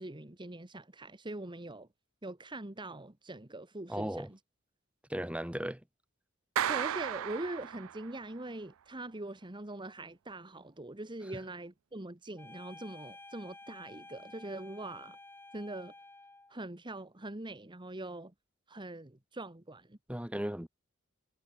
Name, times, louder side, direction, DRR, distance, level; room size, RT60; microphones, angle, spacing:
voice 1, 0.0-1.9 2.2-4.4 6.7-15.2 15.5-15.9 16.5-18.3 18.7-20.0, right 2 dB, 25° right, 1.5 m, -42 dB
voice 2, 3.9-4.3 5.1-5.8 20.1-20.7, right 1 dB, 5° right, 1.4 m, -36 dB
Clapping, 6.6-8.3, right 10 dB, 85° right, 0.4 m, -34 dB
sound 1, 12.4-16.6, left 2 dB, 10° left, 7.1 m, -52 dB
head